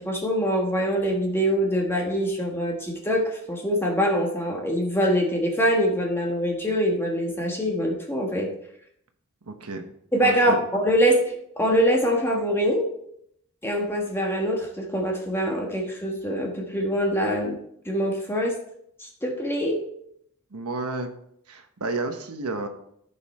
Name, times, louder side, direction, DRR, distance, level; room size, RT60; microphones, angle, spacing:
voice 1, 0.0-8.5 10.1-11.2 11.6-12.9 13.6-17.6 17.8-18.5 19.0-19.8, equal, 10° left, 0 dB, 1.3 m, -24 dB
voice 2, 9.5-9.8 10.2-10.6 20.5-21.2 21.5-22.7, right 3 dB, 90° right, 5 dB, 1.1 m, -31 dB
14.0 x 5.5 x 4.2 m, 0.71 s
head